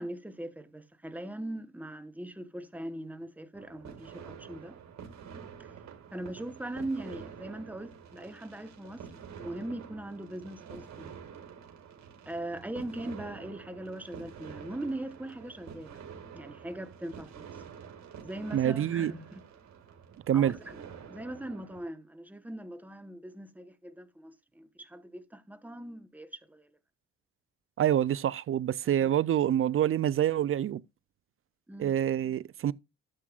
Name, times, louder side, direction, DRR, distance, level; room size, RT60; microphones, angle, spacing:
voice 1, 0.0-4.8 5.6-5.7 6.1-9.1 9.4-11.1 12.2-16.0 16.3-17.5 18.2-19.4 20.3-26.7 29.0-29.1 31.7-32.0, right 1 dB, 5° right, 1.0 m, -40 dB
sound 1, 3.5-21.8, right 7 dB, 65° right, 2.1 m, -48 dB
voice 2, 18.5-19.1 20.3-20.5 27.8-30.8 31.8-32.7, right 11 dB, 45° right, 0.4 m, -26 dB
12.0 x 7.5 x 2.4 m
cardioid pair, 90°, 30 cm